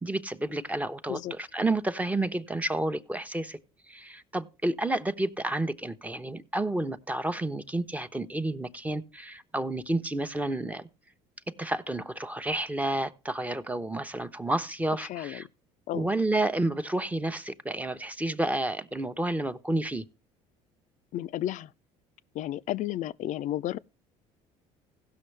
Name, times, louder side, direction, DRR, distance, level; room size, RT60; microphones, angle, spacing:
voice 1, 0.0-3.6 3.9-10.9 11.6-15.5 15.9-20.0, right 2 dB, 10° right, 0.9 m, -30 dB
voice 2, 15.1-15.4 15.9-16.1 21.1-21.7 22.3-23.8, left 13 dB, 55° left, 0.5 m, -32 dB
16.5 x 6.2 x 3.3 m
supercardioid pair, 90°, 15 cm